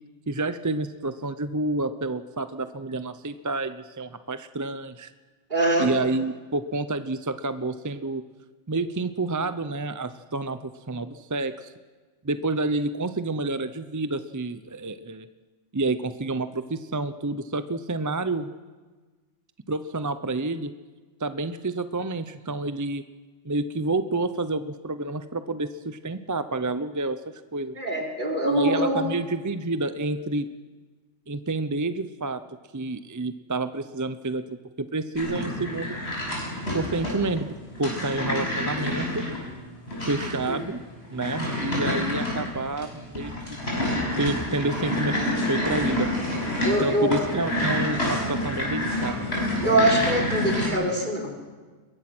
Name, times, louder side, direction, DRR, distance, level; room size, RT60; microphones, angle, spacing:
voice 1, 0.3-5.1 5.8-8.2 8.7-11.7 12.2-15.3 15.7-18.5 19.7-20.7 21.2-23.0 23.4-27.2 27.5-27.8 28.5-30.5 31.3-32.4 32.7-36.0 36.7-37.5 37.8-39.3 40.1-40.8 41.1-43.7 44.2-46.1 46.8-49.2, right 2 dB, 25° right, 11 dB, 0.4 m, -29 dB
voice 2, 5.5-5.9 27.8-29.0 40.5-40.6 46.6-47.2 49.6-51.3, right 1 dB, 40° right, 1 dB, 4.4 m, -23 dB
sound 1, 35.2-50.7, left 1 dB, 60° left, 6.6 m, -28 dB
22.0 x 22.0 x 6.1 m, 1.4 s
omnidirectional pair, 1.2 m